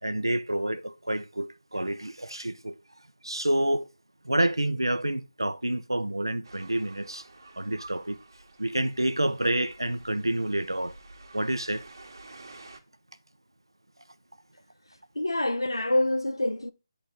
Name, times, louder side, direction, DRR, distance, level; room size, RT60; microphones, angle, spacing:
voice 1, 0.0-2.8 3.2-3.9 4.2-7.2 7.6-8.2 8.6-10.9 11.3-11.8, right 1 dB, 85° right, 0.6 m, -28 dB
sound 1, 6.4-12.8, right 2 dB, 65° right, 1.2 m, -50 dB
voice 2, 15.1-16.7, left 1 dB, 80° left, 0.7 m, -26 dB
9.2 x 3.9 x 3.6 m
figure-of-eight pair, 155°, 2 cm